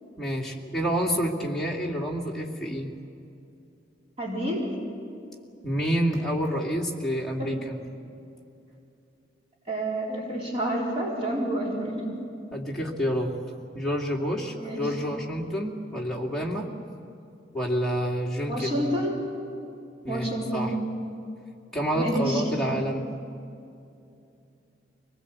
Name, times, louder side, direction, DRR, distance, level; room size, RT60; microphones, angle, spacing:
voice 1, 0.2-2.9 5.6-7.8 12.5-13.3 13.7-16.7 17.5-19.0 20.0-20.7 21.7-23.0, equal, ahead, -4 dB, 2.4 m, -28 dB
voice 2, 4.2-4.6 7.4-7.5 9.7-12.1 14.6-14.8 18.5-19.1 20.1-20.8 21.9-22.4, right 1 dB, 35° right, -4 dB, 4.2 m, -29 dB
24.5 x 19.5 x 8.3 m, 2.6 s
head